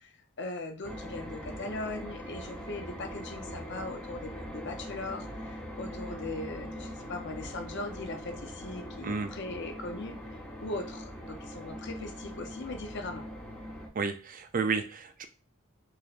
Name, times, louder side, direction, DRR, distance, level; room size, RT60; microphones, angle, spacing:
voice 1, 0.0-13.2, left 2 dB, 50° left, 5 dB, 0.7 m, -40 dB
sound 1, 0.8-13.9, equal, 5° left, 0.8 m, -42 dB
voice 2, 14.0-15.3, right 5 dB, 35° right, 8 dB, 0.4 m, -31 dB
4.7 x 3.0 x 2.4 m, 0.32 s
head